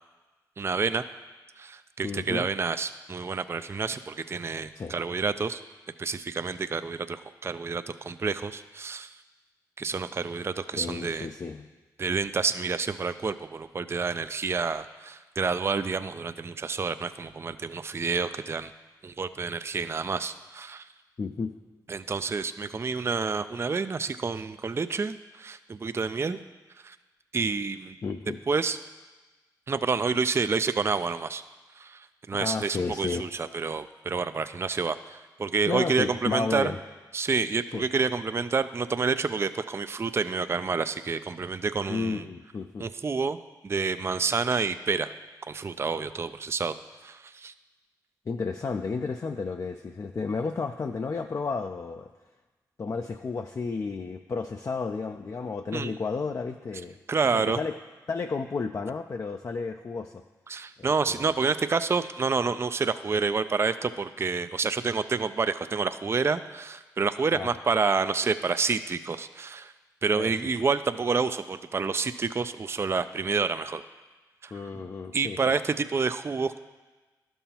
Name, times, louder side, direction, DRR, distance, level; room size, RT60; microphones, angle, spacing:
voice 1, 0.6-1.0 1.6-5.6 6.0-9.1 9.8-11.3 12.0-18.7 19.0-20.9 21.9-26.4 26.8-27.0 27.3-28.0 28.5-28.8 29.7-31.4 31.8-36.7 37.1-42.2 42.8-43.4 43.6-45.1 45.5-46.8 47.0-47.5 55.7-56.0 57.1-57.6 60.5-69.7 70.0-73.8 74.4-74.5 75.1-76.6, right 4 dB, 35° right, 11 dB, 0.3 m, -28 dB
voice 2, 2.0-2.5 4.8-4.9 10.8-11.7 21.2-21.6 28.0-28.4 32.3-33.3 35.7-36.8 37.7-37.8 41.9-42.9 48.3-52.1 52.8-57.0 57.3-57.8 58.1-60.2 60.8-61.3 67.3-67.5 70.2-70.3 74.5-75.4, left 4 dB, 45° left, 5 dB, 0.4 m, -32 dB
12.0 x 5.5 x 2.9 m, 1.2 s
supercardioid pair, 40°, 8 cm